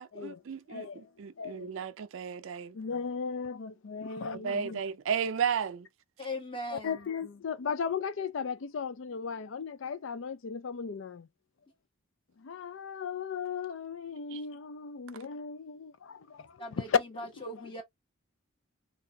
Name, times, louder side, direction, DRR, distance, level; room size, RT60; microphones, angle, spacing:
voice 1, 0.0-2.7 4.4-5.9 14.3-14.4, right 7 dB, 70° right, 0.4 m, -34 dB
voice 2, 0.7-1.9 2.7-4.8 6.7-11.3 12.4-17.0 17.4-17.6, left 6 dB, 65° left, 0.4 m, -36 dB
voice 3, 6.2-7.1 16.6-17.8, left 1 dB, 25° left, 1.3 m, -40 dB
3.8 x 2.4 x 2.7 m
head